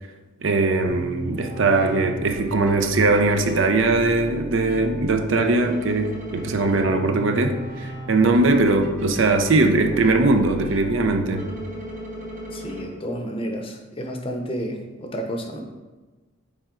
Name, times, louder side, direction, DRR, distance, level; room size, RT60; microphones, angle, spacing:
voice 1, 0.4-11.5, right 3 dB, 65° right, 6 dB, 0.6 m, -20 dB
sound 1, 0.8-12.8, equal, 40° right, 1.3 m, -35 dB
voice 2, 12.5-15.6, equal, 25° left, 3 dB, 0.7 m, -31 dB
7.3 x 4.3 x 3.8 m, 1.2 s
head